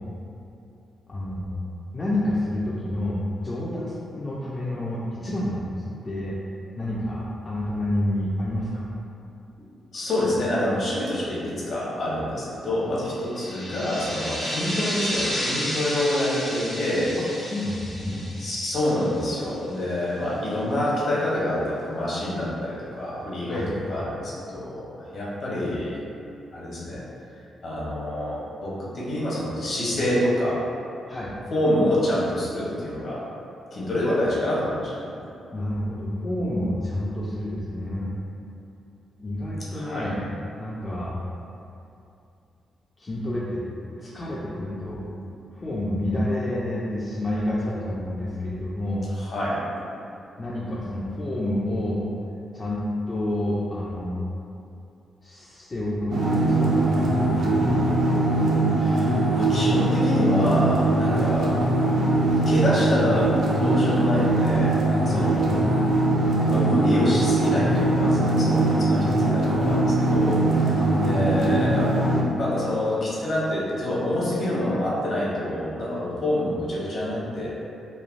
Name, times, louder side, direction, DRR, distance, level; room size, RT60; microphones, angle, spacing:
voice 1, 1.1-1.5 1.9-3.2 3.4-5.7 6.0-6.3 6.8-8.9 17.2-18.3 23.4-23.7 31.1-31.3 35.5-38.1 39.2-40.2 40.6-41.2 43.0-43.6 44.0-45.0 45.5-49.1 50.4-52.1 52.5-52.8 53.1-54.2 55.2-58.0 65.1-65.4 70.8-71.4, left 1 dB, 25° left, -7 dB, 0.3 m, -29 dB
voice 2, 9.9-17.1 18.4-26.0 26.5-27.0 27.6-30.6 31.5-33.2 33.7-35.1 39.7-40.1 49.1-49.6 58.8-61.6 62.5-65.5 66.5-71.9 72.4-77.5, left 1 dB, 50° left, -7 dB, 0.7 m, -27 dB
sound 1, 13.3-19.6, equal, 85° left, 1.0 m, -32 dB
sound 2, 56.1-72.2, right 2 dB, 70° right, 0.4 m, -21 dB
3.1 x 2.0 x 2.4 m, 2.6 s
cardioid pair, 120°, 0 cm